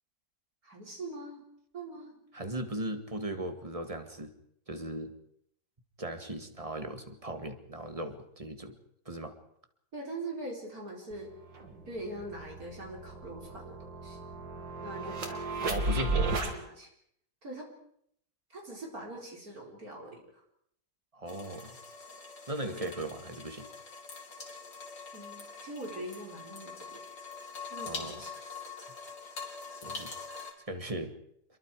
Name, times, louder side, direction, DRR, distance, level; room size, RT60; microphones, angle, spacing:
voice 1, 0.6-1.4 1.7-2.2 9.9-11.3 11.9-14.2 14.8-16.9 17.4-17.7 18.5-20.4 22.7-22.9 25.1-27.2 27.7-28.6, right 2 dB, 50° right, -1 dB, 4.7 m, -43 dB
voice 2, 2.3-4.3 4.7-5.1 6.0-8.8 9.1-9.3 15.7-16.4 21.1-21.8 22.5-23.7 27.8-28.2 29.8-30.1 30.7-31.1, right 1 dB, 20° right, 7 dB, 2.0 m, -37 dB
sound 1, 11.1-11.2 11.5-16.5, right 2 dB, 80° right, 3.2 m, -34 dB
sound 2, 21.3-30.5, left 4 dB, 80° left, 3.7 m, -44 dB
28.0 x 22.5 x 4.9 m, 0.69 s
omnidirectional pair, 2.0 m